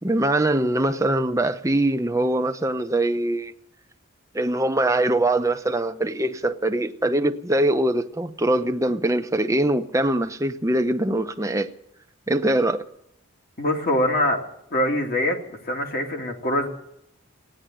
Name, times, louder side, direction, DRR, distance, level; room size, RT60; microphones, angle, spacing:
voice 1, 0.0-3.5 4.3-11.7 12.3-12.8, right 1 dB, 15° right, 0.7 m, -22 dB
voice 2, 13.6-14.4 14.7-15.4 15.6-16.7, left 1 dB, 45° left, 2.5 m, -23 dB
16.0 x 9.8 x 9.0 m
head